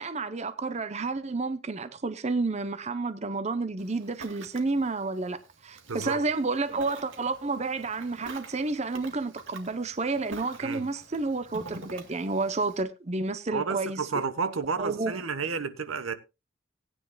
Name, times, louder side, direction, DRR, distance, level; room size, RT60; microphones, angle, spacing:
voice 1, 0.0-14.1 14.8-15.2, right 3 dB, 35° right, 0.6 m, -30 dB
Ocean, 3.8-12.8, right 2 dB, 75° right, 2.0 m, -47 dB
voice 2, 5.9-6.2 10.6-10.8 13.5-16.1, right 5 dB, 90° right, 1.1 m, -31 dB
19.0 x 9.5 x 2.3 m
head